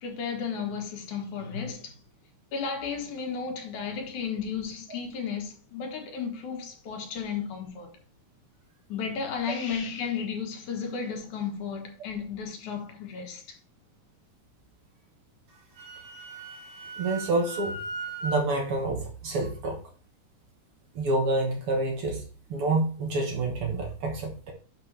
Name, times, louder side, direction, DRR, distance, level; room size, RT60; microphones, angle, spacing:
voice 1, 0.0-2.0 2.5-7.9 8.9-13.6, left 6 dB, 75° left, 2.9 m, -33 dB
Wind instrument woodwind instrument, 15.5-18.4, right 2 dB, 80° right, 4.0 m, -38 dB
voice 2, 17.0-17.8 18.2-19.8 20.9-22.2 22.5-24.5, right 2 dB, 55° right, 1.9 m, -28 dB
11.0 x 5.4 x 3.3 m
omnidirectional pair, 3.5 m